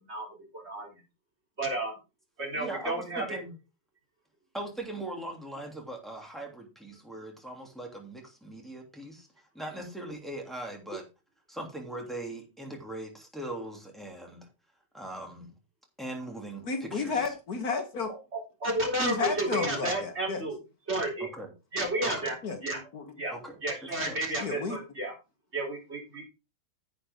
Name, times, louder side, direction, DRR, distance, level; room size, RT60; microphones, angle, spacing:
voice 1, 0.5-0.9 1.6-1.9 2.4-3.4 18.6-20.6 20.9-21.3 21.7-22.8 23.2-23.3 23.6-25.1 25.5-26.2, right 1 dB, 35° right, -1 dB, 4.1 m, -31 dB
voice 2, 2.6-3.5 4.5-11.1 11.5-14.5 14.9-15.5 16.0-17.3 21.2-21.5 22.0-22.3 23.3-24.3, right 1 dB, ahead, 0 dB, 2.9 m, -40 dB
voice 3, 16.6-18.1 19.0-20.4 22.4-23.0 24.4-24.8, left 4 dB, 60° left, 6 dB, 1.8 m, -32 dB
10.5 x 8.6 x 3.7 m, 0.28 s
omnidirectional pair, 1.9 m